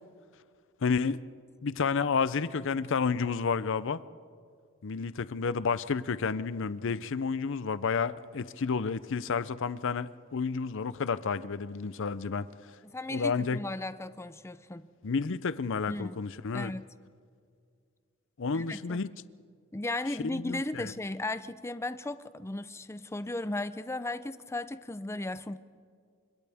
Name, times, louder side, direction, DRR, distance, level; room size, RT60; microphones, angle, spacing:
voice 1, 0.8-1.2 1.6-4.0 4.8-12.5 13.1-13.6 15.0-16.7 18.4-19.1 20.2-20.9, left 5 dB, 65° left, 0.6 m, -30 dB
voice 2, 12.8-14.9 15.9-16.2 16.5-16.9 18.5-19.0 19.7-25.6, left 2 dB, 15° left, 0.5 m, -36 dB
29.5 x 25.5 x 3.5 m
head